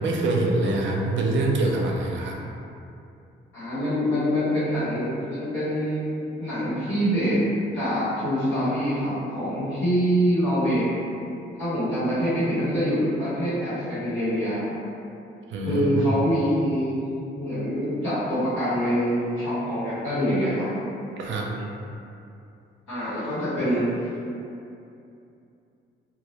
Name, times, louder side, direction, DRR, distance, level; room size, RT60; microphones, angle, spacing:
voice 1, 0.0-2.4 15.5-16.1 21.2-21.5, right 2 dB, 70° right, -1 dB, 0.4 m, -24 dB
voice 2, 3.5-7.4 7.7-10.9 11.5-14.7 15.6-17.0 17.3-20.7 22.9-23.9, equal, 80° left, -13 dB, 1.1 m, -25 dB
2.2 x 2.0 x 2.8 m, 2.6 s
cardioid pair, 90°, 20 cm